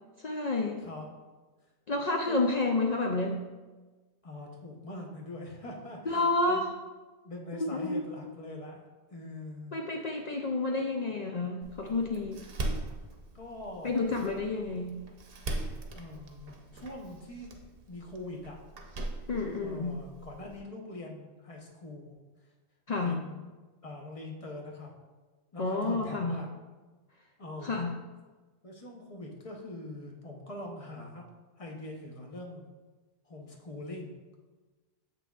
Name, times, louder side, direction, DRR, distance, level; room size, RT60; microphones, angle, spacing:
voice 1, 0.2-0.8 1.9-3.4 6.1-6.7 7.5-8.0 9.7-12.4 13.8-15.0 19.3-20.0 22.9-23.2 25.6-26.4 27.6-27.9, left 3 dB, 55° left, 1 dB, 0.4 m, -30 dB
voice 2, 4.2-6.7 7.2-8.8 9.1-9.8 13.3-14.2 15.9-17.6 17.9-18.6 19.6-22.2 23.0-23.5 23.8-24.9 25.5-26.5 27.4-27.9 28.6-31.2 31.6-32.7 33.2-34.2, left 1 dB, 35° left, 0 dB, 0.8 m, -43 dB
Door, 11.6-20.6, right 2 dB, 60° right, 0.9 m, -41 dB
7.3 x 5.9 x 2.3 m, 1.3 s
omnidirectional pair, 1.2 m